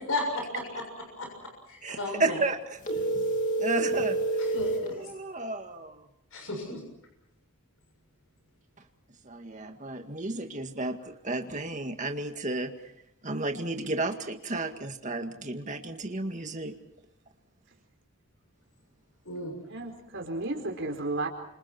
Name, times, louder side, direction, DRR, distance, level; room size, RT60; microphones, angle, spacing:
voice 1, 0.1-0.8 1.2-2.4 4.4-5.1 6.3-6.8 19.3-19.5, left 2 dB, 70° left, 2 dB, 7.0 m, -34 dB
voice 2, 1.8-2.6 3.6-4.2 4.9-6.1 9.2-12.7 13.2-16.7, right 2 dB, 35° right, 5 dB, 2.1 m, -32 dB
sound 1, 2.8-4.9, right 2 dB, 35° left, 3.0 m, -28 dB
voice 3, 19.6-21.3, right 2 dB, 55° right, 3 dB, 4.5 m, -33 dB
29.5 x 26.5 x 4.6 m, 0.78 s
head